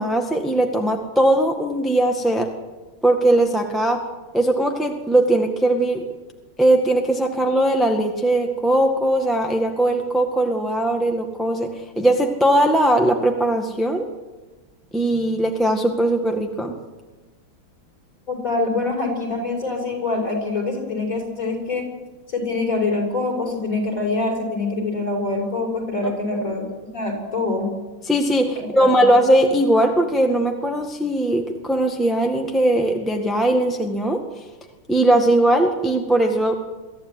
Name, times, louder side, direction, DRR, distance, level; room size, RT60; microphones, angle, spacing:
voice 1, 0.0-2.5 3.0-4.0 4.3-6.0 6.6-11.7 12.0-14.0 14.9-16.8 26.0-26.1 28.0-34.2 34.9-36.6, right 1 dB, ahead, 2 dB, 1.5 m, -19 dB
voice 2, 18.3-21.8 22.3-26.7 26.9-27.7 28.5-29.1, left 3 dB, 40° left, 0 dB, 7.1 m, -25 dB
23.5 x 15.5 x 9.6 m, 1.2 s
omnidirectional pair, 2.3 m